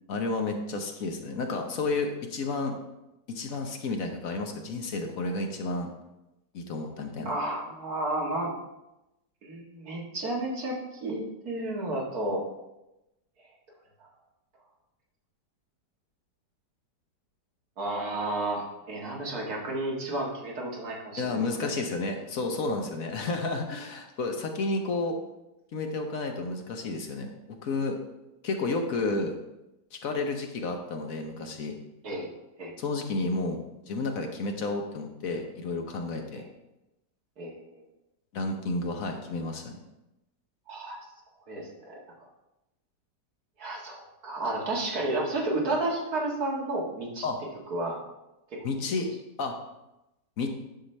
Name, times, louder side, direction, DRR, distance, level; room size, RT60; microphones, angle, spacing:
voice 1, 0.1-2.7 3.3-5.9 6.5-7.3 21.2-25.2 25.7-27.3 27.6-28.0 28.4-29.4 29.9-31.7 32.8-33.6 33.9-36.4 38.3-39.8 47.2-47.4 48.6-49.1 49.4-49.5 50.4-50.5, left 3 dB, 60° left, 4 dB, 1.2 m, -31 dB
voice 2, 7.2-8.5 9.4-12.4 17.8-21.8 32.0-32.3 32.6-32.7 36.3-36.4 37.4-37.6 40.7-41.0 41.5-42.3 43.6-47.3 47.7-48.0, right 2 dB, 60° right, -2 dB, 2.1 m, -32 dB
10.5 x 5.8 x 3.3 m, 0.94 s
omnidirectional pair, 1.8 m